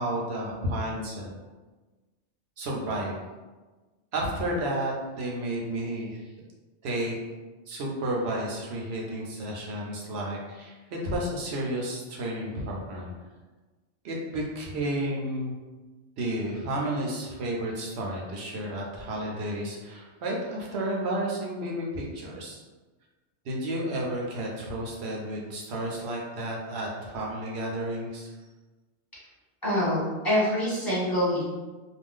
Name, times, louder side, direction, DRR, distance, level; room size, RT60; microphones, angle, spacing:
voice 1, 0.0-1.4 2.6-3.2 4.1-6.2 6.8-7.2 7.7-13.1 14.0-15.5 16.2-22.6 23.4-28.3, right 1 dB, 70° right, -2 dB, 0.9 m, -32 dB
voice 2, 29.6-31.4, equal, 20° left, -8 dB, 1.1 m, -25 dB
2.5 x 2.1 x 3.5 m, 1.2 s
omnidirectional pair, 1.2 m